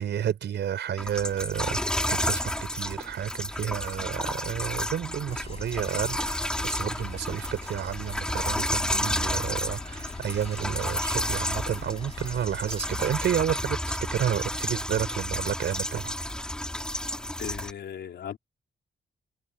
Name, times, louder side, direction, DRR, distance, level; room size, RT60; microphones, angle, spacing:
voice 1, 0.0-16.4, right 9 dB, 90° right, 5.5 m, -31 dB
sound 1, 1.0-17.7, left 1 dB, 5° left, 3.7 m, -31 dB
sound 2, 5.3-13.3, left 5 dB, 35° left, 7.5 m, -43 dB
voice 2, 17.4-18.4, left 9 dB, 75° left, 4.6 m, -37 dB
wide cardioid pair, 165°, 18 cm